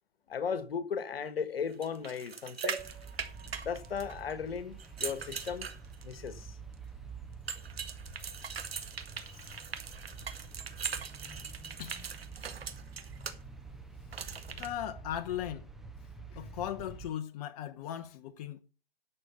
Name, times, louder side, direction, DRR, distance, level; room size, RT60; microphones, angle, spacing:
voice 1, 0.3-2.8 3.6-5.7 6.0-6.6, left 6 dB, 75° left, 1.5 m, -36 dB
sound 1, 1.8-4.3 4.8-6.3 7.5-13.3 14.1-14.7, right 6 dB, 80° right, 1.7 m, -41 dB
sound 2, 2.6-6.3 6.9-7.0 7.2-7.3, right 7 dB, 45° right, 2.1 m, -46 dB
sound 3, 2.8-17.1, right 4 dB, ahead, 0.4 m, -48 dB
voice 2, 9.3-9.6 11.8-11.9 14.6-15.7 16.3-18.6, left 11 dB, 40° left, 0.9 m, -38 dB
9.9 x 6.6 x 7.0 m
hypercardioid pair, 135°, 30 cm